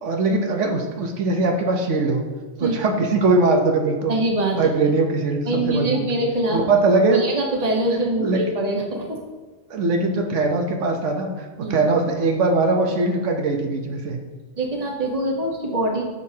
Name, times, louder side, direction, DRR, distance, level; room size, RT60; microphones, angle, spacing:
voice 1, 0.0-2.2 2.6-4.1 4.5-6.1 6.5-7.2 8.2-8.5 9.7-14.2, right 3 dB, 85° right, 2 dB, 1.3 m, -21 dB
voice 2, 4.1-4.6 5.5-6.6 7.1-9.2 11.6-11.7 14.6-16.0, right 1 dB, 35° right, 0 dB, 1.2 m, -23 dB
9.5 x 6.5 x 2.8 m, 1.4 s
omnidirectional pair, 1.2 m